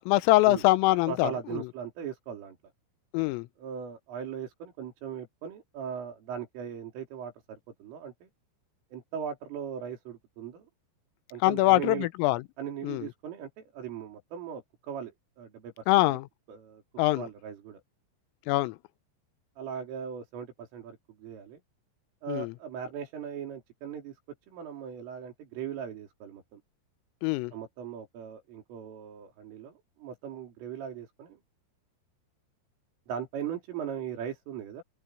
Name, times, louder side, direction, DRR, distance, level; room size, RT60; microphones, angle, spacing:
voice 1, 0.0-1.7 3.1-3.5 11.4-12.4 12.8-13.1 15.9-16.3 17.0-17.3 18.5-18.8 22.3-22.5 27.2-27.5, left 18 dB, 90° left, 3.4 m, -24 dB
voice 2, 1.1-2.6 3.6-8.3 8.9-10.7 11.3-12.1 12.6-15.9 16.5-16.8 17.1-17.8 19.6-21.6 22.2-24.2 24.5-26.6 27.5-31.4 33.1-34.8, right 8 dB, 75° right, 6.7 m, -39 dB
omnidirectional pair, 5.8 m